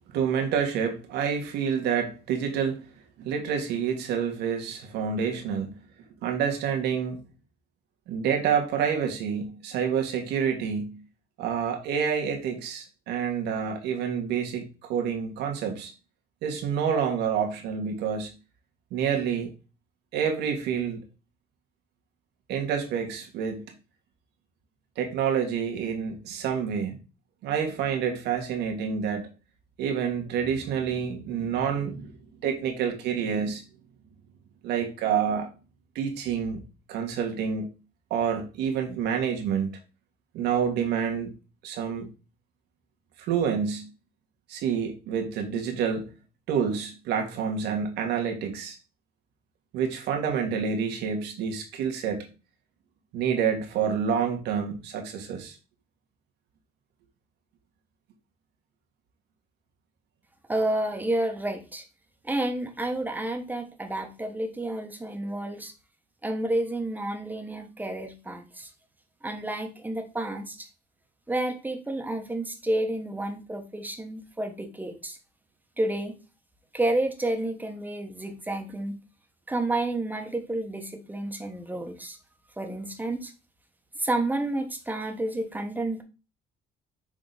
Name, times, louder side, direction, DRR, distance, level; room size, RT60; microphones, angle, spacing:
voice 1, 0.1-2.8 3.2-5.8 6.2-7.2 8.1-11.0 11.4-15.9 16.4-18.3 18.9-19.5 20.1-21.0 22.5-23.7 25.0-27.0 27.4-29.3 29.8-32.1 32.4-33.6 34.6-35.5 35.9-36.6 36.9-37.7 38.1-39.7 40.3-41.3 41.6-42.1 43.3-43.9 44.5-46.1 46.5-48.8 49.7-52.3 53.1-55.5, right 7 dB, 85° right, 1.6 m, -28 dB
voice 2, 60.5-61.8 62.2-65.7 66.2-68.7 69.2-70.7 71.3-75.2 75.8-76.1 76.7-79.0 79.5-82.2 82.6-83.3 84.0-86.0, right 1 dB, 10° right, 1.2 m, -30 dB
6.1 x 3.8 x 4.0 m
cardioid pair, 110°, 17 cm